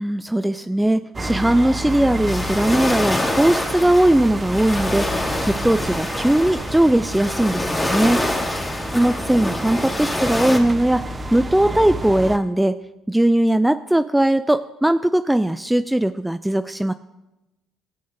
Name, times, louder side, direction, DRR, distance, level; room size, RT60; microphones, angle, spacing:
voice 1, 0.0-8.3 8.9-11.1 11.3-12.8 13.1-16.9, right 1 dB, 5° right, 11 dB, 0.3 m, -19 dB
sound 1, 1.1-12.4, right 1 dB, 25° right, 0.8 m, -30 dB
sound 2, 1.9-10.6, left 1 dB, 20° left, 2.2 m, -26 dB
14.5 x 7.7 x 2.7 m, 0.98 s
supercardioid pair, 60°, 0 cm